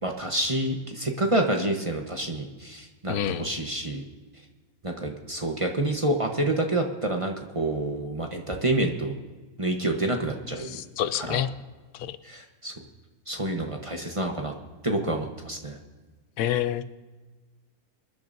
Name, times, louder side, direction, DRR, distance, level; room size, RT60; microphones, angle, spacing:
voice 1, 0.0-4.0 4.8-9.1 9.6-10.8 11.2-11.4 12.2-12.7 13.3-14.5 14.8-15.8, right 1 dB, 25° right, 2 dB, 0.9 m, -28 dB
voice 2, 3.1-3.5 10.6-11.5 11.9-12.2 16.4-17.0, left 11 dB, 90° left, 13 dB, 1.2 m, -28 dB
25.5 x 10.5 x 2.6 m, 1.3 s
omnidirectional pair, 1.6 m